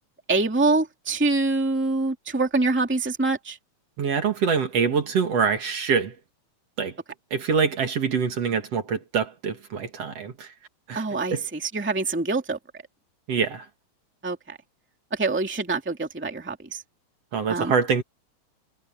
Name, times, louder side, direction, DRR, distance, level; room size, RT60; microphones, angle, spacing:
voice 1, 0.3-3.6 10.9-12.6 14.2-14.6 15.1-16.8 17.5-17.7, right 3 dB, 5° right, 1.9 m, -25 dB
voice 2, 4.0-6.1 6.8-6.9 7.3-10.5 10.9-11.0 11.3-11.4 13.3-13.6 17.3-18.0, right 6 dB, 55° right, 2.9 m, -24 dB
omnidirectional pair, 3.4 m